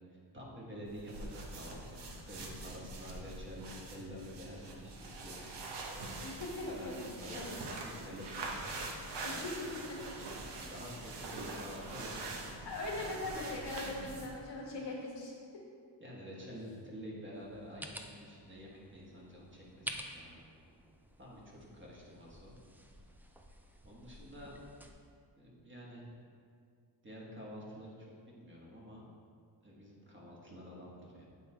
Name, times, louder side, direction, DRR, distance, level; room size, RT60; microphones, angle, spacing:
voice 1, 0.1-5.5 6.7-8.8 9.1-9.5 10.5-12.5 16.0-20.4 21.2-22.6 23.8-24.5 25.3-26.1 27.0-29.0 29.6-31.3, equal, 25° right, -5 dB, 1.4 m, -49 dB
sound 1, 0.8-14.4, right 2 dB, 65° right, 0.9 m, -44 dB
voice 2, 6.2-7.7 9.2-9.5 12.6-15.3 24.2-24.5, left 2 dB, 70° left, -3 dB, 1.6 m, -41 dB
sound 2, 17.3-24.9, right 1 dB, 5° right, 0.3 m, -50 dB
8.2 x 3.2 x 4.4 m, 2.2 s
cardioid pair, 110°, 44 cm